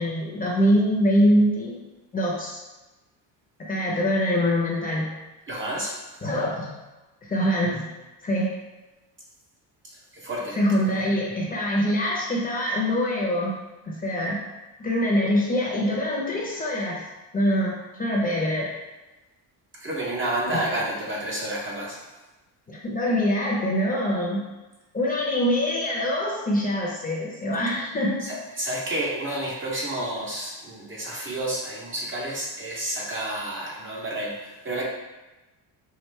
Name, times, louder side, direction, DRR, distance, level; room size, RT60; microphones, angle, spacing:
voice 1, 0.0-1.8 2.1-2.6 3.7-5.1 6.2-6.7 7.2-7.9 8.2-8.5 10.6-13.6 13.8-14.4 14.8-17.1 17.3-18.7 20.5-20.7 22.7-24.4 24.9-28.2, equal, 20° left, -4 dB, 0.8 m, -24 dB
voice 2, 5.5-6.0 10.1-10.6 19.8-22.0 28.2-34.8, right 1 dB, 25° right, -3 dB, 0.8 m, -30 dB
4.8 x 2.5 x 3.2 m, 1.1 s
cardioid pair, 115°, 45 cm